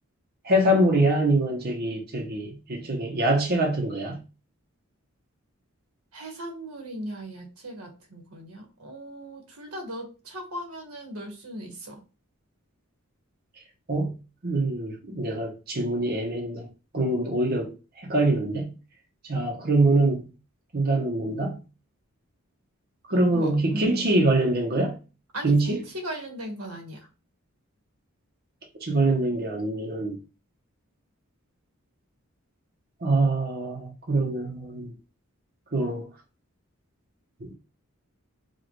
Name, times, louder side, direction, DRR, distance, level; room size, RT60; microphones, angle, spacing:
voice 1, 0.4-4.2 13.9-14.2 14.4-16.7 16.9-18.7 19.2-20.3 20.7-21.6 23.1-25.0 25.4-25.8 28.8-30.2 33.0-34.9 35.7-36.1 37.4-37.5, right 2 dB, 45° right, 0.8 m, -24 dB
voice 2, 6.1-11.9 23.1-24.1 25.3-27.0, right 1 dB, 85° right, 1.4 m, -38 dB
5.0 x 2.4 x 3.0 m
head